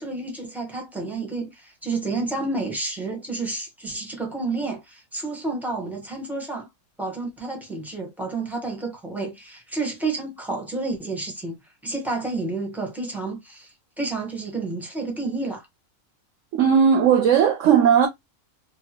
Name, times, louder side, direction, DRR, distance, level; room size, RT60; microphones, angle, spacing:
voice 1, 0.0-6.7 7.0-15.7, right 3 dB, ahead, 0.6 m, -30 dB
voice 2, 16.5-18.1, right 7 dB, 65° right, 0.8 m, -17 dB
2.9 x 2.3 x 2.8 m
omnidirectional pair, 1.6 m